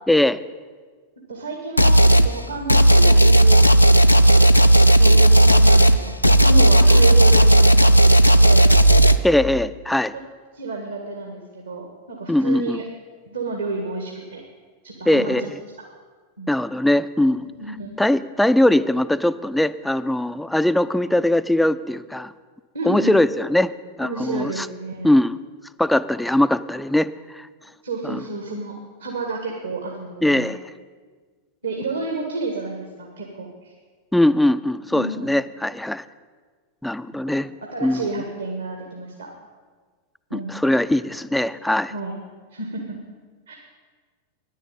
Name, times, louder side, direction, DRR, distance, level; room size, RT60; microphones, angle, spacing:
voice 1, 0.1-0.4 9.2-10.1 12.3-12.8 15.1-15.5 16.5-17.5 18.0-22.3 22.8-23.7 24.0-24.7 25.0-25.4 25.8-27.5 28.0-28.2 30.2-30.6 34.1-36.0 36.8-37.5 37.8-38.0 40.5-41.9, left 1 dB, 5° left, 14 dB, 0.4 m, -20 dB
voice 2, 1.3-4.5 4.9-7.9 8.4-8.7 10.5-12.8 13.3-14.4 14.8-15.4 16.4-16.5 17.5-17.9 22.7-23.3 24.0-25.1 27.8-30.5 31.6-33.7 34.9-35.3 37.3-37.4 37.7-39.3 40.3-40.5 41.9-42.2 42.5-43.0 43.5-43.6, right 3 dB, 75° right, 1 dB, 1.6 m, -30 dB
sound 1, 1.8-2.3 2.7-9.2, right 1 dB, 85° left, 0.5 m, -13 dB
10.5 x 8.4 x 8.8 m, 1.5 s
figure-of-eight pair, 90°, 0 cm